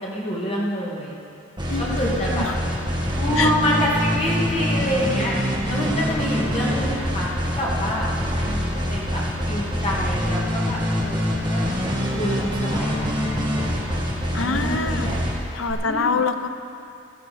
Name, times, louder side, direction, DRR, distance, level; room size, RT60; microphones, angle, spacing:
voice 1, 0.0-1.2 1.8-2.5 3.2-5.4 5.7-8.1 8.3-9.2 9.5-11.2 11.5-11.7 12.0-14.0 14.4-15.2 15.8-16.2, equal, 30° left, -5 dB, 2.2 m, -27 dB
sound 1, 1.6-15.7, equal, 25° right, 1.9 m, -25 dB
voice 2, 1.7-2.6 3.4-3.5 14.3-15.1 15.5-16.5, left 4 dB, 85° left, 7 dB, 0.7 m, -25 dB
15.5 x 13.0 x 4.3 m, 2.5 s
head